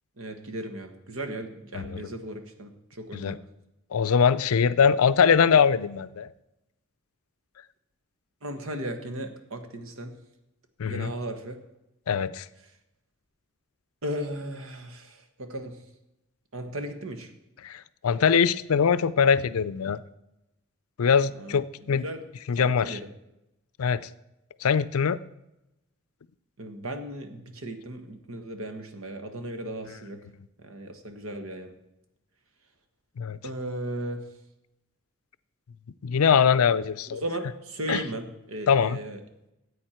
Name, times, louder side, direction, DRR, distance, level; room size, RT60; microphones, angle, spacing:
voice 1, 0.2-3.4 8.4-10.1 10.8-11.6 14.0-15.8 16.5-17.3 21.4-22.2 22.5-23.1 26.6-30.2 30.6-31.7 33.4-34.2 37.1-39.2, right 1 dB, 75° right, 6 dB, 1.3 m, -36 dB
voice 2, 3.9-6.3 10.8-11.1 12.1-12.4 17.6-20.0 21.0-22.0 22.5-23.0 23.8-24.1 24.6-25.2 33.2-33.4 36.0-37.2 37.9-38.0 38.7-39.0, left 6 dB, 90° left, 16 dB, 0.5 m, -22 dB
14.0 x 8.6 x 4.4 m, 0.91 s
head